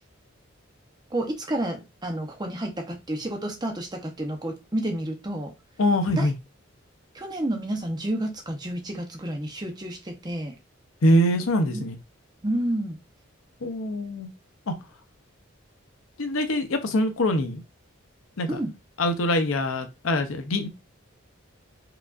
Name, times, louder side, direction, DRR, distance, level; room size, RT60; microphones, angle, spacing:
voice 1, 1.1-5.5 6.1-6.3 7.1-10.5 11.7-11.8 12.4-13.0 18.5-18.7, right 1 dB, 20° right, 0.7 m, -30 dB
voice 2, 5.8-6.3 11.0-12.0 13.6-14.3 14.7-14.8 16.2-17.6 18.4-18.5 19.0-20.7, left 1 dB, 85° left, 0.7 m, -23 dB
4.7 x 2.5 x 2.4 m
head